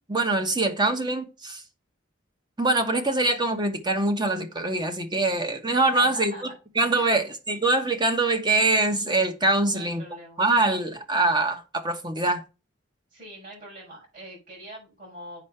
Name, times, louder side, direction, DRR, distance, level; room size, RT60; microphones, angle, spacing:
voice 1, 0.1-1.6 2.6-6.3 6.7-10.0 10.4-12.4, right 2 dB, 20° right, 1.2 m, -24 dB
voice 2, 5.8-6.5 6.9-7.2 9.6-10.4 13.1-15.4, equal, 45° right, 6.5 m, -43 dB
8.2 x 5.6 x 5.6 m
head